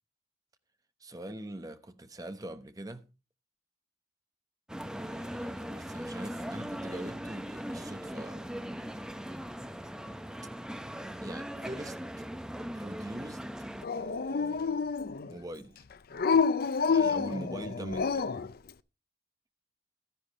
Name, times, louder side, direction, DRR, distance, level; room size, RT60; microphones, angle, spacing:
voice 1, 1.0-3.0 4.9-9.1 11.1-12.2 12.7-13.5 13.9-14.9 15.2-15.8 16.9-18.4, right 1 dB, 20° right, 1.1 m, -43 dB
sound 1, 4.7-13.8, equal, 5° right, 0.7 m, -39 dB
Dog, 13.8-15.3 16.1-18.5, left 5 dB, 55° left, 0.5 m, -28 dB
13.0 x 10.0 x 4.2 m
head